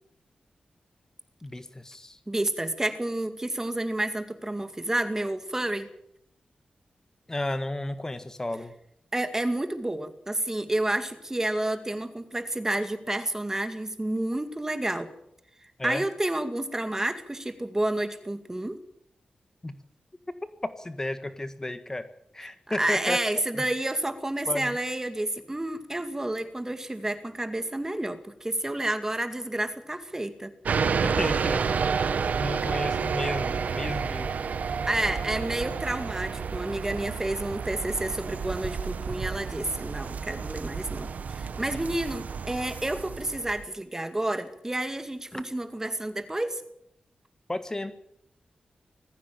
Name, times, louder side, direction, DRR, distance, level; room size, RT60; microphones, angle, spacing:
voice 1, 1.4-2.2 7.3-8.7 15.8-16.0 19.6-19.7 20.6-22.1 22.3-23.6 24.5-24.8 31.0-31.7 32.4-34.3 45.3-45.4 47.5-47.9, left 1 dB, 20° left, 10 dB, 1.5 m, -33 dB
voice 2, 2.3-5.9 9.1-15.1 15.8-18.8 22.7-30.5 34.9-46.6, right 1 dB, 20° right, 9 dB, 2.2 m, -30 dB
sound 1, 30.6-43.7, right 6 dB, 75° right, 1.0 m, -30 dB
20.5 x 15.0 x 9.0 m, 0.77 s
wide cardioid pair, 85°, 3 cm